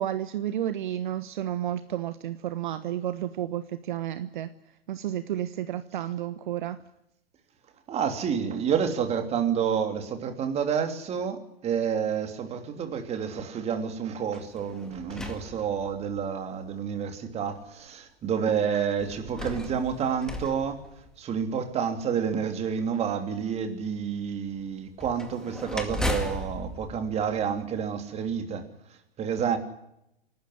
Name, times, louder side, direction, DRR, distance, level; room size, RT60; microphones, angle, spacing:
voice 1, 0.0-4.5 4.9-6.8, right 11 dB, 55° right, 1.3 m, -31 dB
voice 2, 7.9-20.8 21.2-28.7 29.2-29.6, right 7 dB, 20° right, 3.1 m, -29 dB
sound 1, 14.3-16.3 17.1-17.2 19.0-21.6 25.0-28.0, left 1 dB, ahead, 2.2 m, -36 dB
27.5 x 12.5 x 10.0 m
figure-of-eight pair, 115°, 30 cm